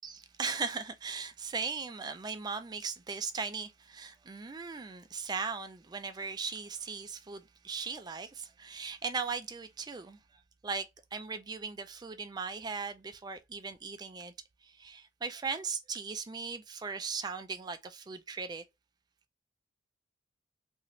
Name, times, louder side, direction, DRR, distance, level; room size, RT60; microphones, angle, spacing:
voice 1, 0.0-10.9 11.1-14.3 14.6-18.6, right 5 dB, 20° right, 0.3 m, -38 dB
2.8 x 2.7 x 3.1 m
head